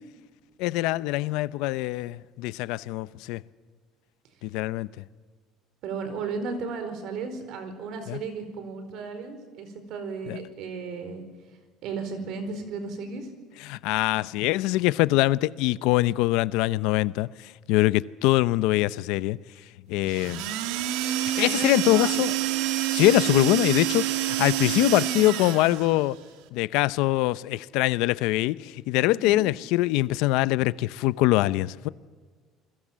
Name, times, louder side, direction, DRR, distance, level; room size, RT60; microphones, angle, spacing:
voice 1, 0.6-3.4 4.4-5.0 8.1-8.2 10.3-10.4 13.6-19.4 19.9-20.5 21.2-22.3 22.9-26.2 26.5-31.9, left 17 dB, 75° left, 0.7 m, -23 dB
voice 2, 5.8-11.2 11.8-13.3 21.4-22.2 29.1-29.5, right 4 dB, 55° right, 4.7 m, -35 dB
sound 1, 20.1-26.0, right 13 dB, 85° right, 2.2 m, -27 dB
28.5 x 21.0 x 7.5 m
cardioid pair, 160°, 0 cm